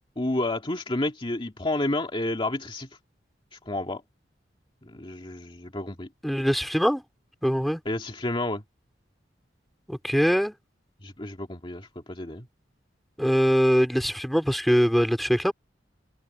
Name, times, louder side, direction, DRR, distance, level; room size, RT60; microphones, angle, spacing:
voice 1, 0.2-2.9 3.7-4.0 4.8-6.1 7.9-8.6 11.0-12.5, left 2 dB, 30° left, 2.2 m, -30 dB
voice 2, 6.2-7.0 7.4-7.8 9.9-10.6 13.2-15.5, equal, ahead, 3.1 m, -22 dB
head